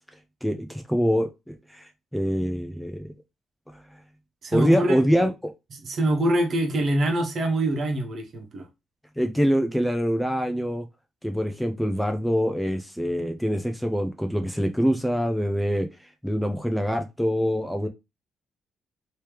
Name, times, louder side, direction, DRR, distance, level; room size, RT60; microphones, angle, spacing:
voice 1, 0.4-3.1 4.5-5.5 9.2-10.9 11.2-15.9 16.2-17.9, equal, 5° left, 0.5 m, -24 dB
voice 2, 4.4-5.3 5.8-8.7, right 1 dB, 55° right, 1.2 m, -25 dB
3.2 x 3.0 x 3.2 m
cardioid pair, 90°, 0 cm